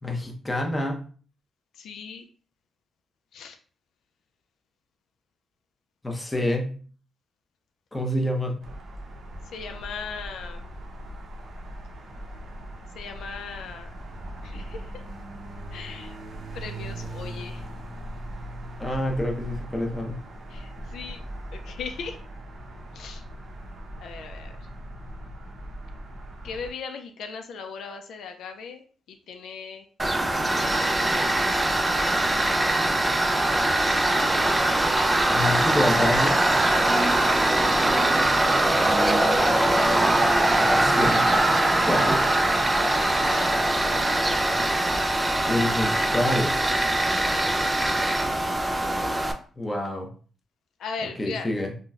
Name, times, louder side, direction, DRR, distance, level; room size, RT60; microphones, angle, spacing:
voice 1, 0.0-1.0 6.0-6.8 7.9-8.6 18.8-20.2 35.3-36.4 40.6-41.3 41.8-42.4 45.5-46.6 49.6-50.1 51.2-51.7, left 1 dB, 15° left, 1 dB, 0.7 m, -27 dB
voice 2, 1.7-2.3 3.3-3.6 9.5-10.7 12.9-14.0 14.4-15.0 15.7-16.2 16.5-17.7 20.5-21.2 21.5-22.2 22.9-23.2 24.0-24.7 26.4-28.8 29.1-29.9 30.6-31.7 36.9-37.1 42.8-43.6 47.0-47.6 50.8-51.5, left 5 dB, 80° left, 5 dB, 0.3 m, -38 dB
sound 1, 8.6-26.7, right 1 dB, 60° right, 0.7 m, -39 dB
Tools, 30.0-49.3, right 1 dB, 15° right, 0.3 m, -22 dB
3.8 x 2.1 x 2.3 m, 0.42 s
cardioid pair, 105°, 0 cm